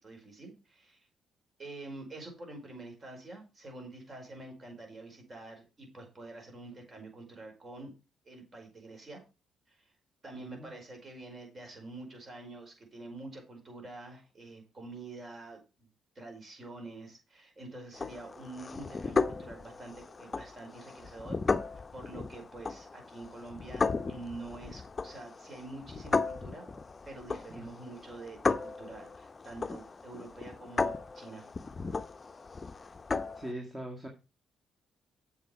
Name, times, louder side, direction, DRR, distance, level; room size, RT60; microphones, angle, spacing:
voice 1, 0.0-1.0 1.6-7.9 8.3-9.2 9.7-9.9 10.2-15.9 16.2-21.4 21.9-26.7 27.1-31.5, right 2 dB, 35° right, 3 dB, 5.1 m, -47 dB
voice 2, 10.3-10.7 27.6-27.7 33.4-34.1, right 1 dB, 15° right, 1 dB, 1.9 m, -41 dB
sound 1, 17.9-33.5, left 4 dB, 30° left, 0.7 m, -35 dB
7.8 x 7.4 x 5.1 m, 0.30 s
cardioid pair, 90°, 0 cm